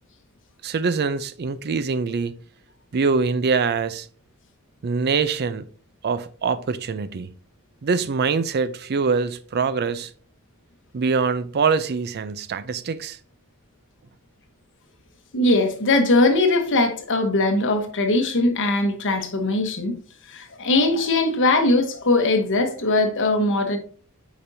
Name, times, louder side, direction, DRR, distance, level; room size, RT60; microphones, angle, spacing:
voice 1, 0.6-2.4 2.9-4.1 4.8-5.6 6.0-7.3 7.8-10.1 10.9-13.2, right 5 dB, 45° right, 0.4 m, -24 dB
voice 2, 15.3-19.9 20.3-23.8, left 2 dB, 60° left, 1.2 m, -20 dB
8.7 x 5.2 x 2.7 m
head